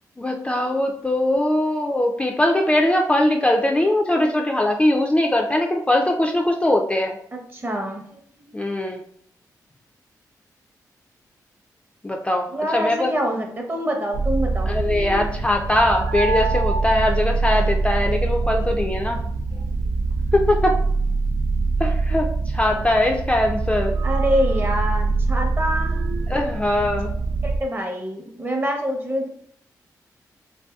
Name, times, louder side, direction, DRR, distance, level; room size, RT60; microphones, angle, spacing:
voice 1, 0.2-7.2 8.5-9.0 12.0-13.1 14.7-19.2 20.3-20.7 21.8-23.9 26.3-27.1, left 1 dB, 15° left, 2 dB, 0.3 m, -21 dB
voice 2, 7.3-8.0 8.3-8.6 12.5-14.7 24.0-26.0 27.4-29.3, equal, 30° right, 2 dB, 0.7 m, -26 dB
sound 1, 14.1-27.6, right 3 dB, 80° right, 0.4 m, -24 dB
2.6 x 2.6 x 2.3 m, 0.66 s
cardioid pair, 55°, 7 cm